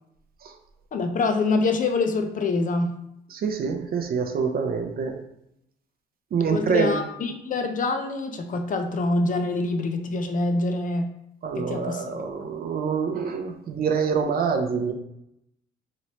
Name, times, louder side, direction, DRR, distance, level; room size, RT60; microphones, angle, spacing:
voice 1, 0.9-3.0 6.5-11.1 11.6-12.2, left 3 dB, 40° left, 5 dB, 0.4 m, -25 dB
voice 2, 3.3-5.2 6.3-7.0 11.4-14.9, right 6 dB, 50° right, 4 dB, 0.5 m, -26 dB
3.0 x 2.9 x 2.8 m, 0.80 s
cardioid pair, 90°, 20 cm